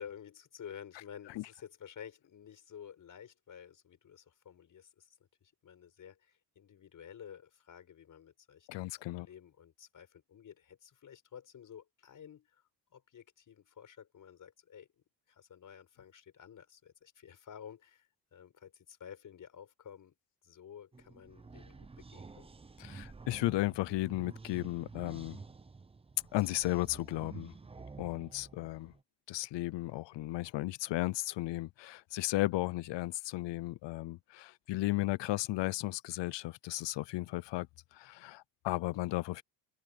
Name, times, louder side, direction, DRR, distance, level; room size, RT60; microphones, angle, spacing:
voice 1, 0.0-5.2 5.4-8.9 9.2-12.6 12.9-14.9 15.3-20.1 20.4-22.5, left 8 dB, 45° left, 5.3 m, -52 dB
voice 2, 8.7-9.3 22.8-25.4 26.3-27.5 28.0-28.9 29.3-37.7 37.9-39.4, left 18 dB, 80° left, 0.7 m, -35 dB
sound 1, 20.9-29.0, right 4 dB, 15° right, 0.7 m, -50 dB
cardioid pair, 160°, 43 cm